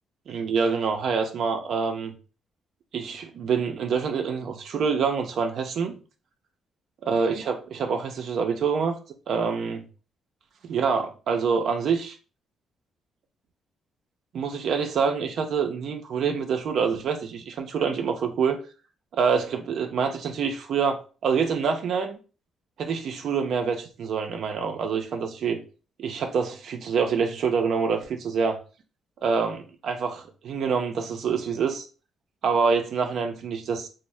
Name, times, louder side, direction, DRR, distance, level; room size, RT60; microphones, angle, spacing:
voice 1, 0.3-2.1 2.9-5.9 7.1-9.0 9.3-9.8 10.6-12.2 14.3-18.6 19.1-22.2 22.8-25.6 26.0-28.6 29.2-31.9 32.4-33.9, right 5 dB, 65° right, 0.4 m, -26 dB
2.6 x 2.0 x 3.1 m
cardioid pair, 90°, 0 cm